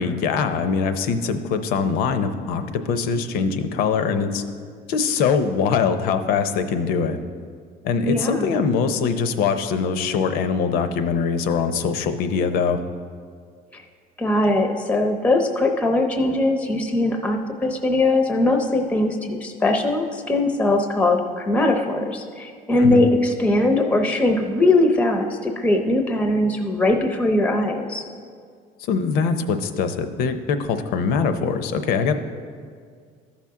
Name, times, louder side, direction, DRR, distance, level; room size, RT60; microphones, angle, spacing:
voice 1, 0.0-4.4 4.9-7.2 7.8-12.8 22.8-23.0 28.8-32.1, left 5 dB, 65° left, 9 dB, 0.6 m, -22 dB
voice 2, 8.0-8.6 13.7-13.8 14.2-28.0, left 2 dB, 10° left, 4 dB, 0.6 m, -20 dB
14.0 x 5.8 x 3.7 m, 2.1 s
cardioid pair, 150°, 16 cm